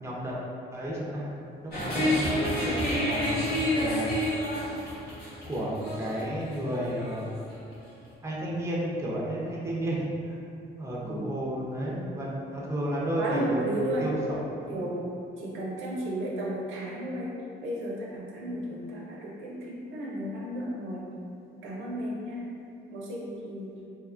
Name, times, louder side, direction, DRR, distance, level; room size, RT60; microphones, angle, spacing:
voice 1, 0.0-0.4 0.7-1.3 1.6-4.3 5.5-7.4 8.2-10.4 10.8-14.8, equal, 15° right, -5 dB, 0.5 m, -32 dB
sound 1, 1.7-7.2, equal, 50° left, 1.0 m, -29 dB
voice 2, 13.2-14.1 14.7-21.1 21.6-22.5 22.9-23.7, right 1 dB, 80° right, -4 dB, 0.5 m, -34 dB
2.8 x 2.2 x 2.4 m, 2.6 s
cardioid pair, 90°, 20 cm